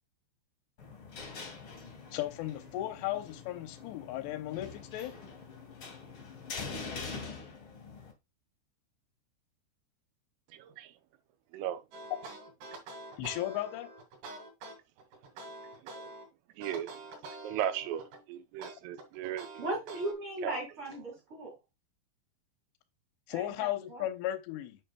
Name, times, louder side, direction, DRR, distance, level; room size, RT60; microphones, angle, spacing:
sound 1, 0.8-8.1, left 4 dB, 45° left, 1.8 m, -44 dB
voice 1, 2.1-5.1 13.2-13.9 23.3-24.8, left 14 dB, 75° left, 2.6 m, -35 dB
voice 2, 10.5-10.9 11.5-11.8 15.8-16.1 16.6-17.0 17.4-19.6 20.4-20.6, right 11 dB, 85° right, 3.3 m, -37 dB
sound 2, 11.9-16.2 16.6-18.2 18.6-20.1, right 2 dB, 60° right, 3.9 m, -46 dB
voice 3, 19.6-21.5 23.3-24.0, right 1 dB, 40° right, 2.3 m, -37 dB
8.5 x 6.3 x 2.3 m
omnidirectional pair, 5.7 m